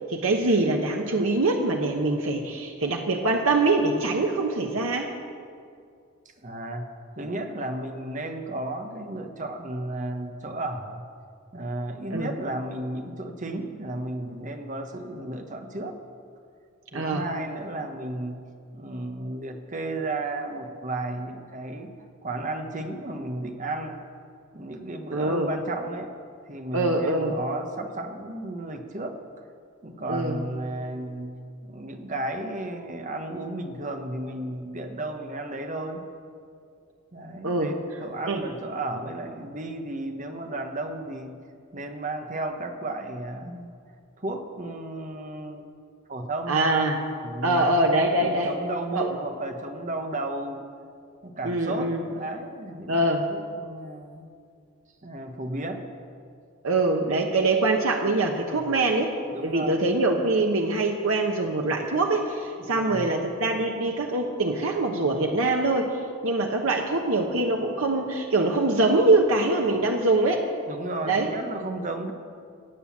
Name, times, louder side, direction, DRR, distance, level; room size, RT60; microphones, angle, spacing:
voice 1, 0.1-5.1 12.1-12.3 16.9-17.2 25.1-25.5 26.7-27.3 30.1-30.4 37.4-37.7 38.3-38.4 46.5-47.0 47.4-48.5 48.9-49.2 51.4-52.0 52.9-53.2 56.6-65.9 66.2-70.4 71.0-71.3, right 2 dB, 80° right, 2 dB, 1.1 m, -24 dB
voice 2, 6.2-11.0 11.5-16.0 16.9-18.4 18.7-21.9 22.2-24.0 24.5-26.1 26.5-29.2 29.8-31.3 31.6-36.0 37.1-41.4 41.7-43.7 44.2-45.7 46.1-46.6 47.2-47.7 48.2-50.6 51.2-54.3 55.0-55.8 58.5-58.9 59.3-59.8 62.6-63.1 70.7-72.1, right 2 dB, 35° right, 5 dB, 1.2 m, -33 dB
17.5 x 8.0 x 7.3 m, 2.3 s
head